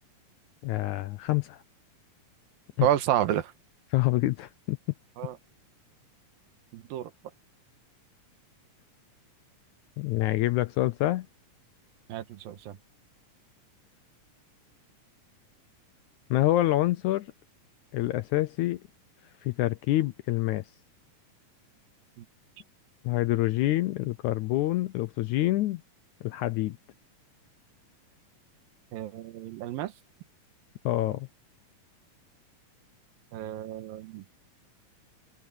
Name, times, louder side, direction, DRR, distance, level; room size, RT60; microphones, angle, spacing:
voice 1, 0.6-1.6 2.8-2.9 3.9-4.8 10.0-11.3 16.3-17.3 17.9-18.8 19.4-20.6 23.0-25.8 26.2-26.8 30.8-31.3, left 16 dB, 80° left, 1.8 m, -26 dB
voice 2, 2.8-3.5 5.2-5.4 6.7-7.1 12.1-12.8 22.2-22.3 28.9-29.9 33.3-34.3, right 12 dB, 90° right, 2.9 m, -30 dB
open air
omnidirectional pair, 4.0 m